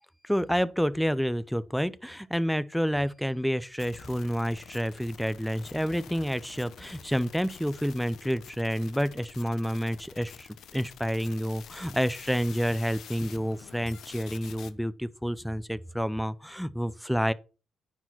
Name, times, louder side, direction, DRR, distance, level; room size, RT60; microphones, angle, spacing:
voice 1, 0.2-17.3, equal, ahead, 0.5 m, -29 dB
sound 1, 3.8-14.7, left 9 dB, 70° left, 0.9 m, -48 dB
9.7 x 4.8 x 6.0 m
cardioid pair, 105°, 0 cm